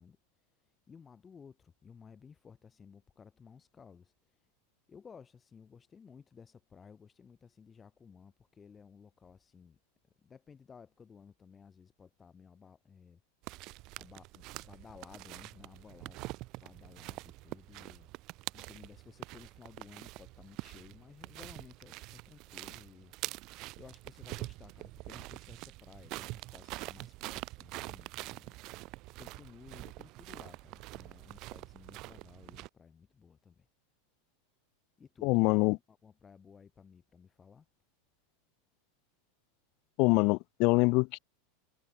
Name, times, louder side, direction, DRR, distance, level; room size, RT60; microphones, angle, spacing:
voice 1, 0.0-4.5 4.9-9.8 10.2-13.2 13.5-13.7 14.0-16.3 16.6-18.1 18.5-33.7 35.0-37.7, left 6 dB, 20° left, 2.3 m, -56 dB
sound 1, 13.4-32.7, right 21 dB, 45° right, 1.9 m, -45 dB
voice 2, 35.2-35.8 40.0-41.2, left 28 dB, 50° left, 0.4 m, -25 dB
supercardioid pair, 135°, 0 cm